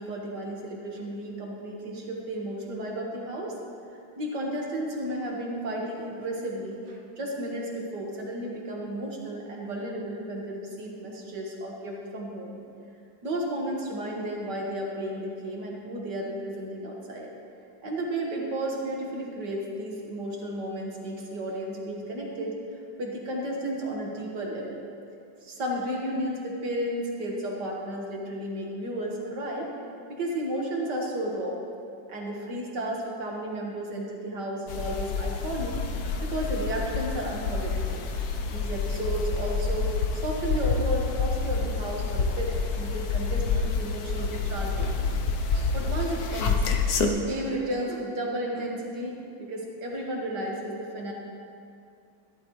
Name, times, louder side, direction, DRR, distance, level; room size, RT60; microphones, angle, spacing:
voice 1, 0.0-3.6 4.2-12.6 13.2-17.3 17.8-22.5 23.0-24.8 25.4-29.7 30.1-31.6 32.1-35.8 36.2-38.0 38.5-45.1 45.5-46.6 47.1-51.1, right 1 dB, 65° right, -2 dB, 2.2 m, -33 dB
sound 1, 34.7-47.1, left 4 dB, 60° left, 1.2 m, -28 dB
14.0 x 12.5 x 3.2 m, 2.5 s
omnidirectional pair, 2.0 m